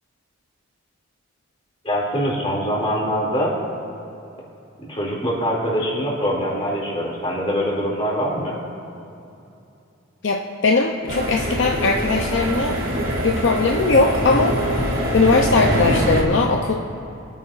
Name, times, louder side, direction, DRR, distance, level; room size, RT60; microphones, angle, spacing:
voice 1, 1.8-3.5 4.8-8.6, equal, 25° left, -4 dB, 2.5 m, -23 dB
voice 2, 10.2-12.8 13.2-14.6 15.1-16.7, left 3 dB, 60° left, 1 dB, 0.6 m, -19 dB
sound 1, 11.1-16.2, equal, 45° right, 1.9 m, -23 dB
25.5 x 9.2 x 2.5 m, 2.8 s
head